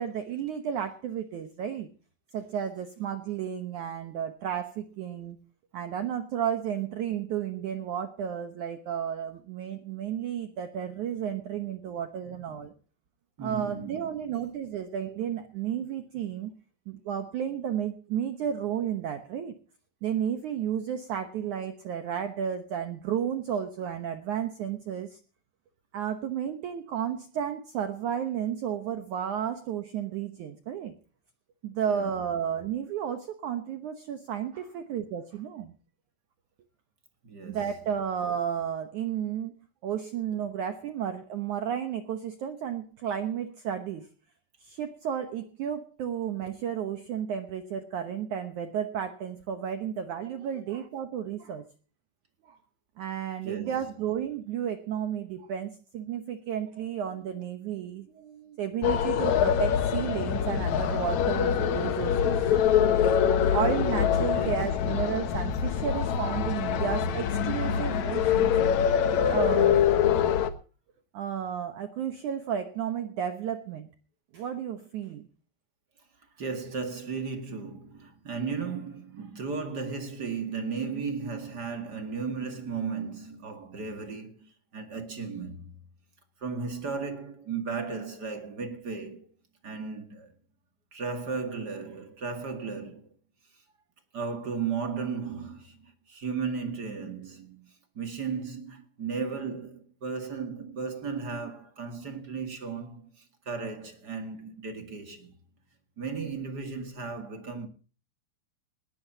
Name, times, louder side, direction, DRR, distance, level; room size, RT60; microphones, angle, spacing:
voice 1, 0.0-1.9 2.3-5.4 5.7-12.7 13.4-16.5 16.9-19.6 20.0-25.2 25.9-31.0 31.6-35.7 37.5-39.6 39.8-44.1 44.6-51.7 52.4-52.6 53.0-62.4 63.5-68.6 69.3-70.0 71.1-73.9 74.3-75.3, right 9 dB, 75° right, 1.7 m, -32 dB
voice 2, 13.4-14.4 31.9-32.1 37.2-37.6 53.4-53.8 64.3-64.7 76.4-85.7 86.4-89.3 89.6-90.3 90.9-93.1 94.1-97.7 97.9-105.3 106.0-107.7, right 5 dB, 45° right, 1.3 m, -35 dB
sound 1, 58.8-70.5, left 8 dB, 70° left, 1.8 m, -24 dB
20.0 x 17.5 x 2.8 m
omnidirectional pair, 5.0 m